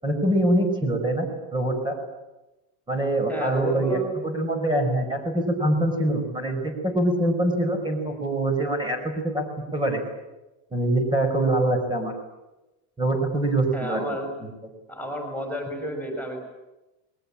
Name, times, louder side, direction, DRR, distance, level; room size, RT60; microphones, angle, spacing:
voice 1, 0.0-2.0 2.9-4.0 4.2-9.4 9.7-10.0 10.7-12.1 13.0-14.1, right 1 dB, 10° right, 3 dB, 5.7 m, -24 dB
voice 2, 3.3-4.1 13.7-14.3 14.9-16.4, equal, 5° left, 3 dB, 5.8 m, -30 dB
28.5 x 22.0 x 8.9 m, 1.0 s
cardioid pair, 170°, 41 cm